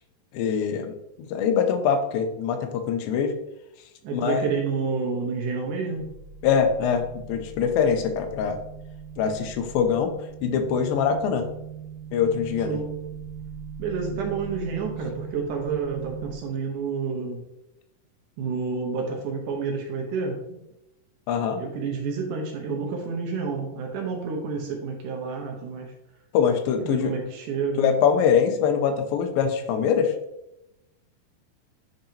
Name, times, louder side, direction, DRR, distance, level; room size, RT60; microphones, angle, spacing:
voice 1, 0.3-0.9 1.3-3.3 4.1-4.5 6.4-8.6 9.2-10.1 10.4-11.5 12.1-12.8 21.3-21.6 26.3-27.1 27.8-30.1, left 7 dB, 85° left, 6 dB, 2.4 m, -23 dB
voice 2, 4.0-6.2 12.7-13.0 13.8-17.5 18.4-20.6 21.6-25.9 26.8-28.0, right 5 dB, 70° right, 1 dB, 2.2 m, -29 dB
sound 1, 6.0-16.3, right 7 dB, 45° right, 1.5 m, -39 dB
9.1 x 3.9 x 2.8 m, 0.88 s
omnidirectional pair, 4.1 m